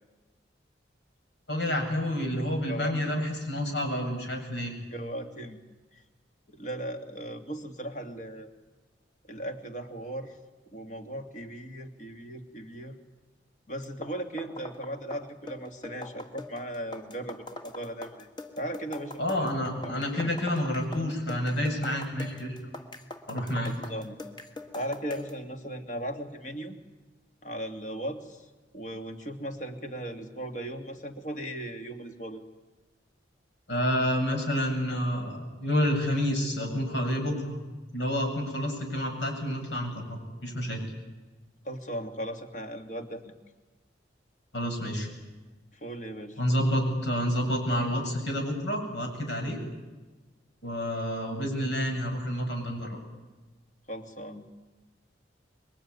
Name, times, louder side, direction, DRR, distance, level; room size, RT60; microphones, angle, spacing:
voice 1, 1.5-4.8 19.2-22.5 23.3-23.7 33.7-37.6 37.9-40.8 44.5-45.1 46.4-49.6 50.6-53.0, equal, 75° left, 3 dB, 7.8 m, -29 dB
voice 2, 4.9-5.6 5.9-6.0 6.5-8.5 9.2-10.4 10.7-13.0 13.7-18.3 18.6-19.5 19.9-20.3 23.6-24.2 24.7-26.8 27.4-28.5 28.7-32.4 41.6-43.3 45.8-46.4 53.9-54.5, right 1 dB, 45° left, 5 dB, 2.6 m, -37 dB
sound 1, 13.8-25.4, left 2 dB, 25° left, 1.8 m, -43 dB
26.5 x 23.0 x 9.8 m, 1.2 s
head